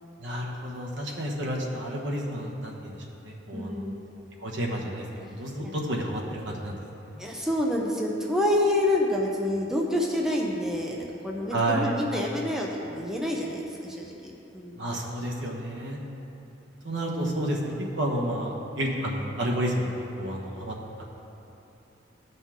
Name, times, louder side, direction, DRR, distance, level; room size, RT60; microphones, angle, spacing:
voice 1, 0.2-3.9 4.4-7.2 11.5-12.0 14.7-16.0 16.8-19.9 20.2-21.0, right 1 dB, 70° right, -1 dB, 1.2 m, -30 dB
voice 2, 3.5-3.9 5.6-5.7 7.2-14.8, left 1 dB, ahead, -2 dB, 0.6 m, -28 dB
14.0 x 5.5 x 3.6 m, 3.0 s
head